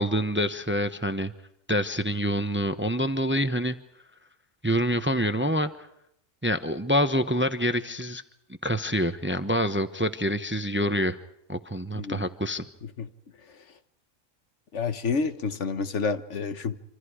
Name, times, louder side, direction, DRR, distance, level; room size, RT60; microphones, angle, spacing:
voice 1, 0.0-1.3 1.7-3.8 4.6-5.7 6.4-8.2 8.6-11.2 11.5-12.6, equal, 10° right, 10 dB, 0.8 m, -26 dB
voice 2, 11.9-12.3 13.0-13.1 14.7-16.8, left 4 dB, 70° left, 10 dB, 1.5 m, -29 dB
26.5 x 26.5 x 4.9 m, 0.79 s
omnidirectional pair, 1.3 m